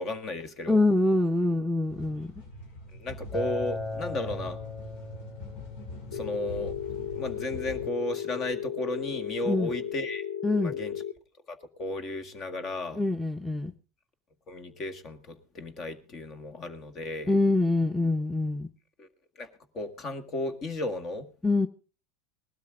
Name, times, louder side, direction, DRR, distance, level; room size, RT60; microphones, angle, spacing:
voice 1, 0.0-0.8 3.0-4.6 6.1-6.8 7.1-10.2 10.6-10.9 11.5-13.0 14.5-17.4 19.0-19.1 19.4-19.5 19.7-21.3, left 2 dB, 35° left, 10 dB, 1.8 m, -34 dB
voice 2, 0.7-2.3 9.4-9.7 10.4-10.7 12.9-13.7 17.3-18.7 21.4-21.7, left 2 dB, ahead, 3 dB, 0.9 m, -25 dB
sound 1, 1.9-7.9, left 1 dB, 65° left, 3.3 m, -43 dB
Acoustic guitar, 3.3-8.5, left 1 dB, 20° left, 4.4 m, -39 dB
Telephone, 6.1-11.1, left 9 dB, 90° left, 0.6 m, -35 dB
19.0 x 12.5 x 3.7 m, 0.35 s
hypercardioid pair, 100°, 0 cm